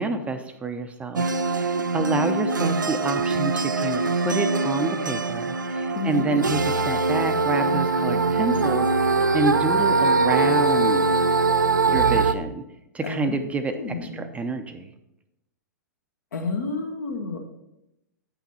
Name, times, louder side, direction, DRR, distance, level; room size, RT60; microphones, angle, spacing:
voice 1, 0.0-11.1 11.9-12.6 12.9-14.9, right 3 dB, 15° right, 7 dB, 0.6 m, -28 dB
Katy's voice, 1.2-12.3, right 3 dB, 85° right, 0.5 m, -22 dB
voice 2, 5.9-6.2 13.0-13.4 13.7-14.2 16.3-17.4, left 3 dB, 65° left, 3 dB, 1.4 m, -30 dB
8.4 x 5.8 x 4.3 m, 0.88 s
figure-of-eight pair, 105°, 10 cm